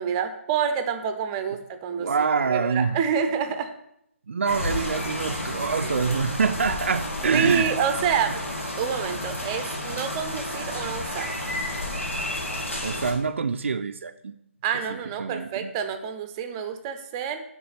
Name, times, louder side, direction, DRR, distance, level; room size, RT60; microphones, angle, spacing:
voice 1, 0.0-2.1 2.5-3.7 7.3-8.4 8.8-11.3 14.6-17.4, right 7 dB, 20° right, 8 dB, 0.6 m, -27 dB
voice 2, 2.0-3.0 4.3-7.8 12.8-14.3 15.2-15.7, right 5 dB, 65° right, 7 dB, 0.4 m, -25 dB
sound 1, 4.5-13.1, left 1 dB, 70° left, 2.2 m, -31 dB
7.9 x 3.7 x 6.5 m, 0.76 s
figure-of-eight pair, 145°, 7 cm